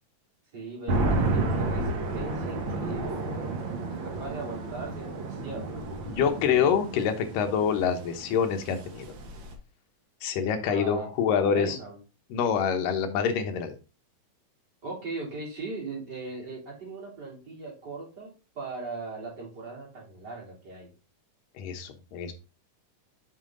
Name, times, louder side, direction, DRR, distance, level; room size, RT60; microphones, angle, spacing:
voice 1, 0.5-3.2 4.0-5.7 10.7-11.1 11.4-12.0 14.8-18.3 18.6-20.9, right 3 dB, 30° right, -4 dB, 3.6 m, -38 dB
sound 1, 0.9-9.5, right 2 dB, 85° right, 1.0 m, -31 dB
voice 2, 6.1-9.1 10.2-11.8 12.3-13.8 21.6-22.3, left 7 dB, 80° left, 7 dB, 2.6 m, -26 dB
7.2 x 5.7 x 3.8 m, 0.32 s
omnidirectional pair, 3.8 m